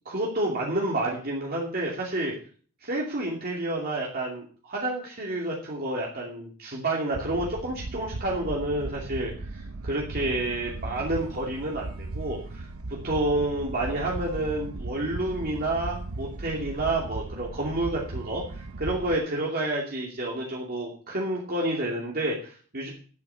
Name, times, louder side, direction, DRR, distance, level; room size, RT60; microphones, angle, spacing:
voice 1, 0.1-2.3 2.8-12.6 12.9-22.9, right 1 dB, 40° right, -3 dB, 2.5 m, -29 dB
sound 1, 7.1-19.2, right 2 dB, 65° right, 0.8 m, -37 dB
11.0 x 8.7 x 6.8 m, 0.43 s
head